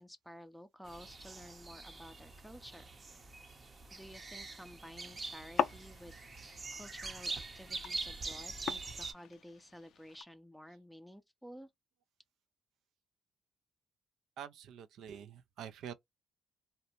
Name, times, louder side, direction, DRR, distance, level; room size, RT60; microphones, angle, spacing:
voice 1, 0.0-2.9 3.9-11.7, equal, ahead, 0.5 m, -53 dB
sound 1, 0.8-9.1, right 3 dB, 35° right, 0.7 m, -44 dB
sound 2, 5.0-10.2, left 9 dB, 75° left, 0.3 m, -41 dB
voice 2, 14.4-15.9, right 8 dB, 80° right, 0.4 m, -46 dB
2.6 x 2.1 x 2.9 m
cardioid pair, 90°, 0 cm